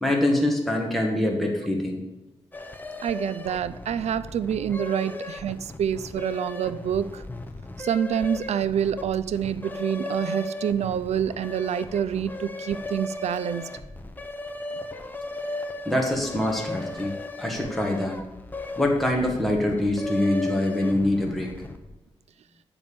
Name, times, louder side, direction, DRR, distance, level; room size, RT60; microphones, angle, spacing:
voice 1, 0.0-2.0 15.8-17.1 17.4-18.2 18.8-21.5, left 1 dB, ahead, -1 dB, 1.5 m, -24 dB
sound 1, 2.5-22.0, left 2 dB, 15° left, 0.7 m, -37 dB
voice 2, 3.0-7.2 7.8-13.7, right 8 dB, 75° right, 15 dB, 0.4 m, -27 dB
9.0 x 5.3 x 6.9 m, 0.99 s
wide cardioid pair, 115°, 11 cm